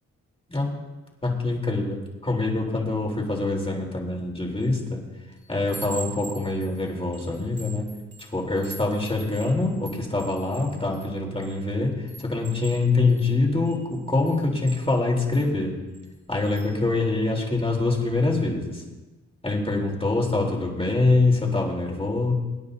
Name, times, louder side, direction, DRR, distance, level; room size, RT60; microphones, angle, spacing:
voice 1, 1.2-5.0 5.5-7.9 8.2-15.7 16.3-18.8 19.4-22.3, left 2 dB, 20° left, -1 dB, 3.6 m, -24 dB
Chime, 4.6-4.9 5.3-11.6 12.1-15.5 15.9-16.2 16.4-16.7, right 4 dB, 35° right, 2.4 m, -44 dB
25.5 x 9.8 x 2.7 m, 1.2 s
cardioid pair, 70°, 32 cm